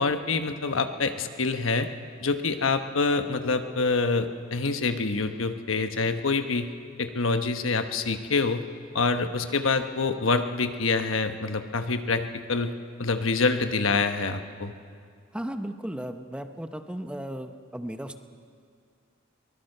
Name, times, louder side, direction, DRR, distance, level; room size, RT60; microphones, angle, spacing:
voice 1, 0.0-1.9 2.2-6.7 7.0-8.6 8.9-12.7 13.0-14.7, left 4 dB, 80° left, 7 dB, 1.2 m, -26 dB
voice 2, 15.3-18.2, equal, 5° right, 7 dB, 0.8 m, -35 dB
23.0 x 20.0 x 6.7 m, 2.2 s
head